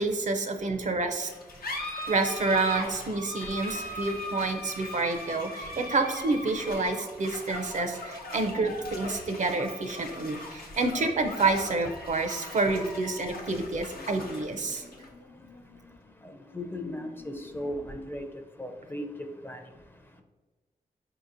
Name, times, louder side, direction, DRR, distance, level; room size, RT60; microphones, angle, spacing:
voice 1, 0.0-1.3 2.1-14.9, right 3 dB, 55° right, 6 dB, 0.5 m, -28 dB
sound 1, 1.2-18.2, left 1 dB, 80° left, 0.7 m, -40 dB
voice 2, 16.5-18.3 18.6-19.1 19.4-19.6, left 1 dB, 15° left, 5 dB, 0.5 m, -36 dB
4.5 x 2.8 x 2.5 m, 1.3 s
cardioid pair, 55°, 15 cm